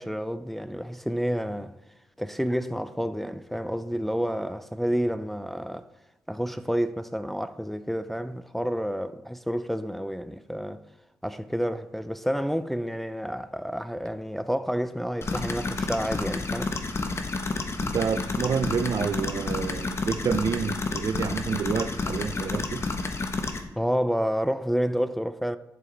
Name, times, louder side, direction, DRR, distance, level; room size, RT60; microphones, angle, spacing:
voice 1, 0.0-1.8 2.2-5.9 6.3-10.8 11.2-16.8 23.8-25.6, equal, 5° left, 0.4 m, -29 dB
sound 1, 15.2-23.6, left 3 dB, 40° left, 1.0 m, -30 dB
voice 2, 17.8-22.8, right 6 dB, 60° right, 0.5 m, -28 dB
11.0 x 4.8 x 4.0 m
cardioid pair, 75°, 7 cm